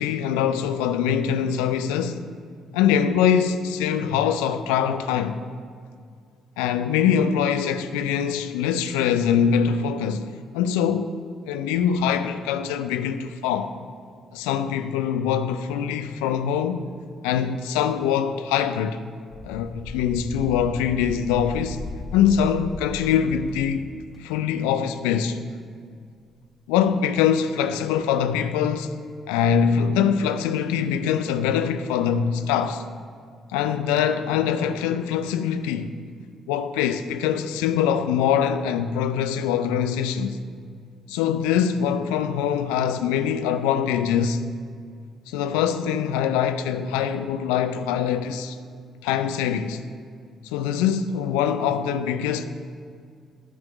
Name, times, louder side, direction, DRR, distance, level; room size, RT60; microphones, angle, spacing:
voice 1, 0.0-2.3 2.7-5.4 6.6-11.1 11.5-13.7 14.3-16.9 17.2-19.0 19.4-21.9 22.1-23.9 24.2-25.4 26.7-28.9 29.3-32.8 33.5-35.9 36.5-40.4 41.1-44.4 45.3-48.6 49.0-49.8 50.4-52.4, left 8 dB, 75° left, 0.4 m, -23 dB
sound 1, 19.3-24.2, left 2 dB, 40° left, 1.3 m, -37 dB
9.7 x 5.1 x 6.8 m
hypercardioid pair, 45°, 0 cm